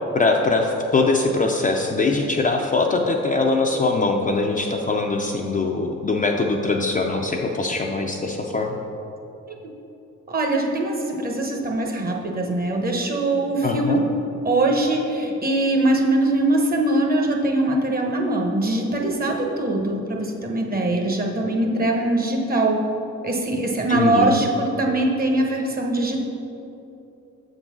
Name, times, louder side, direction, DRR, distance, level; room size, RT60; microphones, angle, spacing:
voice 1, 0.1-8.7 13.6-14.0 23.9-24.4, left 3 dB, 25° left, 1 dB, 0.5 m, -22 dB
voice 2, 10.3-14.0 14.4-22.8 23.2-26.2, right 2 dB, 30° right, 1 dB, 1.0 m, -22 dB
6.7 x 3.9 x 6.1 m, 2.9 s
cardioid pair, 90°, 30 cm